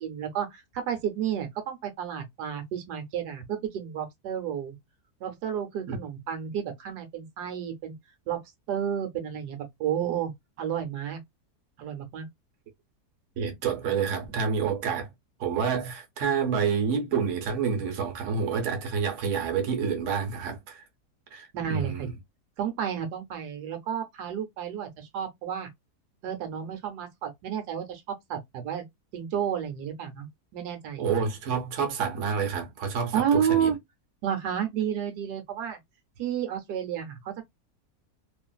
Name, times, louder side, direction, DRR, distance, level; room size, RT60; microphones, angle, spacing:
voice 1, 0.0-4.7 5.2-7.9 8.3-8.4 8.7-10.3 10.6-11.2 11.8-12.2 21.5-22.1 22.6-25.7 26.2-28.8 29.1-30.3 30.5-31.1 33.1-33.8 34.2-35.8 36.2-37.4, right 8 dB, 80° right, 1.3 m, -31 dB
voice 2, 13.4-15.1 15.4-20.8 21.3-22.1 31.0-33.7, right 6 dB, 55° right, 1.1 m, -28 dB
2.8 x 2.5 x 2.2 m
omnidirectional pair, 1.7 m